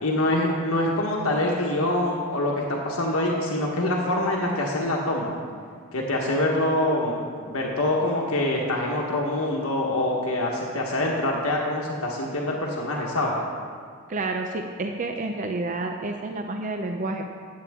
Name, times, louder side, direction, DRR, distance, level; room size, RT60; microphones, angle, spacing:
voice 1, 0.0-5.4 5.9-7.2 7.5-13.4, left 1 dB, 75° left, -2 dB, 1.2 m, -25 dB
voice 2, 14.1-17.2, right 2 dB, 35° right, 4 dB, 0.5 m, -29 dB
15.5 x 8.5 x 3.6 m, 2.1 s
head